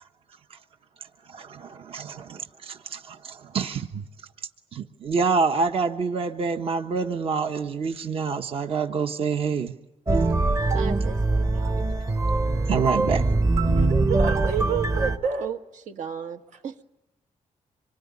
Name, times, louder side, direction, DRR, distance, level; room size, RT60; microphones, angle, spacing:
voice 1, 1.3-4.0 4.7-9.7 12.7-13.3, right 5 dB, 45° right, 6 dB, 1.1 m, -27 dB
sound 1, 10.1-15.2, right 2 dB, 25° right, 1.0 m, -22 dB
voice 2, 10.7-11.9 15.4-15.6 15.9-16.7, right 8 dB, 70° right, 6 dB, 1.7 m, -36 dB
voice 3, 13.7-15.5 16.5-16.6, right 6 dB, 85° right, 5 dB, 4.3 m, -29 dB
25.5 x 23.0 x 9.7 m, 0.90 s
wide cardioid pair, 170°, 13 cm